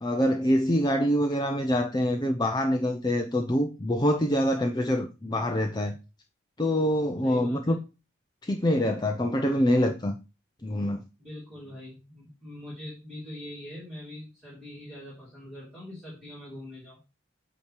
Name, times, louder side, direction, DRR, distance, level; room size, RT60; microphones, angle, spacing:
voice 1, 0.0-6.0 6.6-7.8 8.4-10.2 10.6-11.0, equal, 20° left, 0.5 m, -25 dB
voice 2, 7.2-7.8 11.2-17.0, left 1 dB, ahead, 2.7 m, -43 dB
8.8 x 2.9 x 6.4 m
head